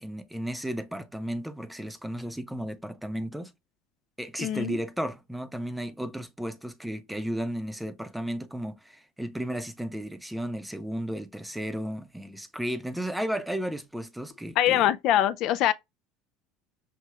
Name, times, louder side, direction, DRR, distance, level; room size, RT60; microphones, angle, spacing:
voice 1, 0.0-3.5 4.2-14.9, equal, 5° right, 0.6 m, -34 dB
voice 2, 4.4-4.8 14.6-15.7, left 12 dB, 60° left, 0.3 m, -23 dB
6.0 x 2.7 x 2.2 m
supercardioid pair, 110°, 0 cm